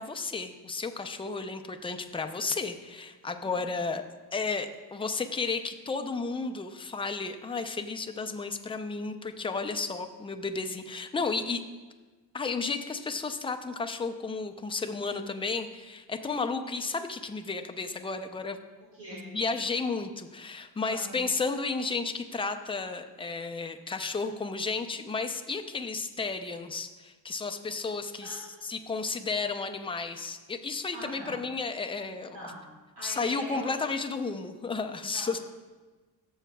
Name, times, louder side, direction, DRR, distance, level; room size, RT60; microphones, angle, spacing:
voice 1, 0.0-4.1 4.3-11.6 12.3-18.6 19.1-32.4 33.0-35.4, left 4 dB, 15° left, 7 dB, 0.5 m, -33 dB
voice 2, 3.4-3.8 18.9-19.3 20.9-21.1 28.1-28.7 30.9-31.4 32.3-33.8 35.1-35.4, right 1 dB, 80° right, -6 dB, 2.3 m, -43 dB
14.0 x 7.2 x 2.3 m, 1.3 s
cardioid pair, 125°, 37 cm